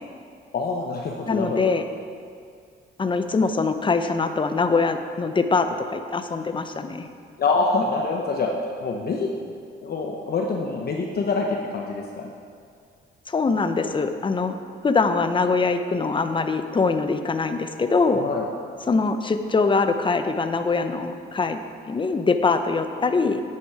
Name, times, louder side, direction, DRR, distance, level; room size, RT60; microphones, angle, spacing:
voice 1, 0.5-1.6 7.4-9.3 9.8-12.3 18.1-18.4, left 3 dB, 50° left, 0 dB, 1.0 m, -25 dB
voice 2, 1.3-1.8 3.0-7.1 13.3-14.6 14.8-18.2 18.8-21.6 21.9-23.4, left 4 dB, 25° left, 8 dB, 0.7 m, -23 dB
9.9 x 8.6 x 4.8 m, 2.2 s
cardioid pair, 90°, 20 cm